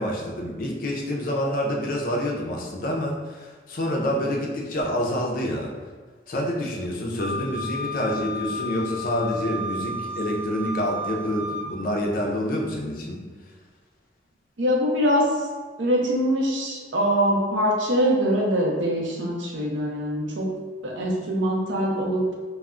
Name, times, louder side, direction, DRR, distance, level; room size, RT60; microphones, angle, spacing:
voice 1, 0.0-5.7 6.3-13.2, left 1 dB, 50° left, 0 dB, 0.4 m, -27 dB
Wind instrument woodwind instrument, 7.2-11.7, left 1 dB, 10° right, 0.4 m, -33 dB
voice 2, 14.6-15.5 15.8-20.5 20.8-22.2, equal, 85° right, -1 dB, 0.6 m, -23 dB
2.2 x 2.0 x 3.6 m, 1.4 s
head